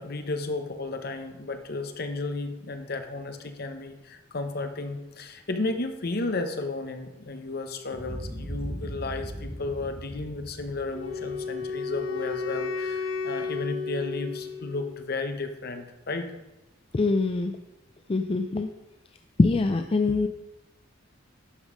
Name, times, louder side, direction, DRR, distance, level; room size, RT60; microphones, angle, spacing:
voice 1, 0.0-16.3, left 3 dB, 50° left, 7 dB, 0.9 m, -33 dB
Boom, 7.9-12.2, equal, 10° left, 2.2 m, -39 dB
Wind instrument woodwind instrument, 10.8-15.0, left 4 dB, 85° left, 1.1 m, -33 dB
voice 2, 16.9-17.6 18.1-18.7 19.4-20.3, left 3 dB, 30° left, 7 dB, 0.4 m, -23 dB
11.5 x 5.3 x 5.0 m, 0.98 s
head